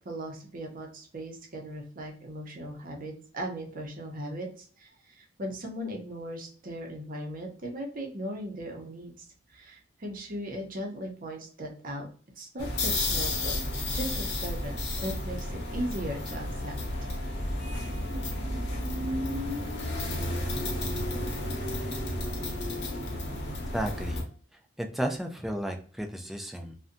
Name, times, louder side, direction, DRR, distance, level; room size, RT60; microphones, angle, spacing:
voice 1, 0.0-12.1 12.4-13.6 13.9-16.8, equal, 50° right, 2 dB, 0.6 m, -38 dB
sound 1, 12.6-24.2, left 1 dB, 60° left, 0.8 m, -32 dB
voice 2, 23.7-24.3 24.8-26.8, right 1 dB, ahead, 3 dB, 0.3 m, -33 dB
2.6 x 2.1 x 2.5 m, 0.44 s
head